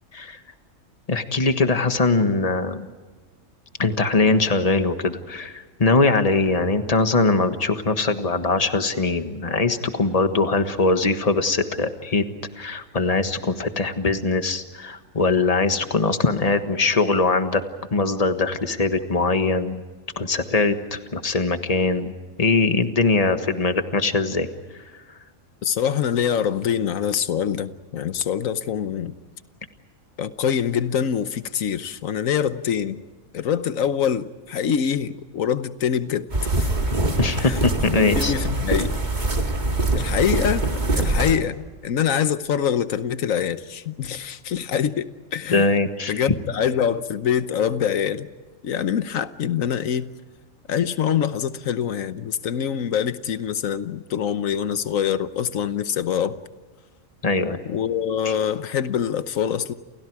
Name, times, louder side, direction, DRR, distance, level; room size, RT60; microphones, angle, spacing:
voice 1, 1.1-2.9 3.8-12.2 12.6-17.6 17.9-19.8 20.2-22.1 22.4-24.5 37.2-38.3 45.5-46.2 57.2-57.6 58.2-58.3, left 3 dB, 30° left, 1.5 m, -21 dB
voice 2, 25.6-29.2 30.2-33.0 33.3-36.3 36.5-36.7 37.4-37.6 37.9-38.9 39.9-45.1 45.3-45.7 46.1-48.3 48.6-50.1 50.7-56.4 57.6-59.7, left 8 dB, 85° left, 1.3 m, -24 dB
sound 1, 36.3-41.3, right 2 dB, 35° right, 2.3 m, -23 dB
29.5 x 29.0 x 4.8 m
omnidirectional pair, 1.3 m